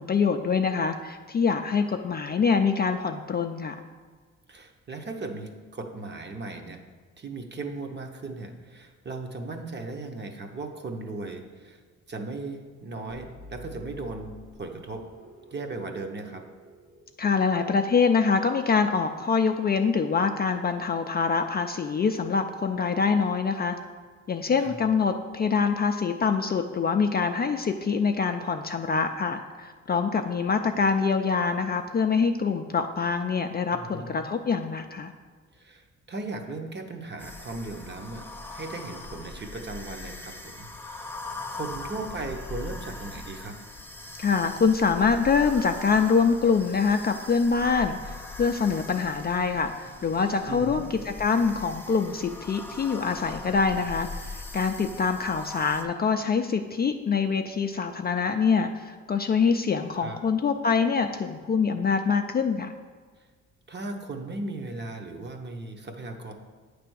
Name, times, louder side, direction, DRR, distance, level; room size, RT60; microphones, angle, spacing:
voice 1, 0.0-3.7 17.2-23.8 24.3-35.1 44.2-62.7, left 5 dB, 30° left, 5 dB, 0.4 m, -25 dB
voice 2, 4.5-6.8 7.2-11.8 12.1-14.3 14.6-15.0 15.5-16.4 24.6-24.8 33.7-34.3 35.5-38.2 38.5-41.2 41.5-43.5 50.5-50.9 60.0-60.2 63.7-66.3, right 3 dB, 35° right, 4 dB, 0.9 m, -37 dB
sound 1, 13.1-17.8, equal, 65° right, 1.4 m, -49 dB
sound 2, 37.2-55.8, left 3 dB, 5° left, 0.8 m, -41 dB
8.6 x 3.4 x 6.2 m, 1.5 s
cardioid pair, 85°, 32 cm